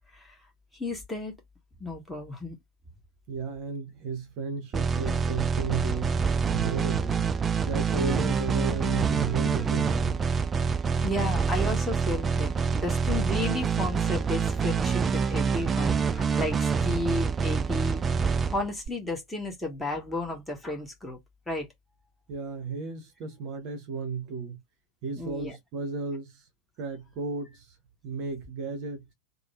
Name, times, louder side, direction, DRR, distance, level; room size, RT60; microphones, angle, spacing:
voice 1, 0.7-1.3 1.8-2.6 11.0-18.0 18.5-21.2 21.5-21.7 25.2-25.5, left 2 dB, 5° left, 1.6 m, -33 dB
voice 2, 3.3-6.2 6.5-7.3 7.6-10.4 22.3-24.6 25.0-26.5 26.8-27.8 28.0-29.1, right 4 dB, 40° right, 0.9 m, -34 dB
sound 1, 4.7-18.9, right 5 dB, 20° right, 0.3 m, -26 dB
3.4 x 2.2 x 4.2 m
figure-of-eight pair, 90°, 0 cm